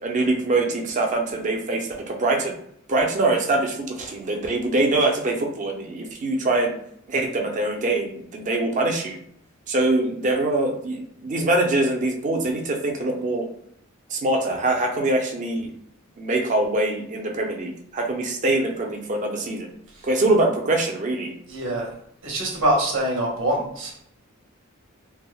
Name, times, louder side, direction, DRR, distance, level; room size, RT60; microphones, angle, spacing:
voice 1, 0.0-2.5 2.9-6.7 7.1-9.2 9.7-13.5 14.1-15.7 16.2-19.7 20.0-21.3, right 2 dB, 35° right, 2 dB, 0.5 m, -23 dB
voice 2, 21.5-21.9 22.2-24.0, right 1 dB, 70° right, -2 dB, 1.0 m, -24 dB
3.4 x 2.0 x 2.3 m, 0.69 s
head